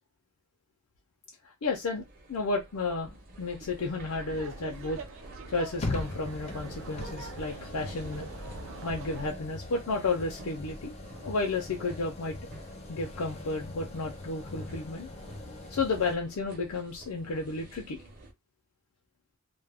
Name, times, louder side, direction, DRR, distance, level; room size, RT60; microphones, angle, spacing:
voice 1, 1.6-3.1 3.4-5.0 5.5-8.3 8.8-11.0 11.2-12.4 12.9-15.1 15.7-18.0, left 3 dB, 85° left, 0.5 m, -32 dB
sound 1, 1.6-18.3, right 1 dB, 40° right, 0.7 m, -49 dB
Laughter, 4.2-9.3, right 4 dB, 60° right, 0.4 m, -44 dB
sound 2, 5.7-16.2, left 2 dB, 30° left, 0.4 m, -41 dB
2.3 x 2.0 x 3.4 m
head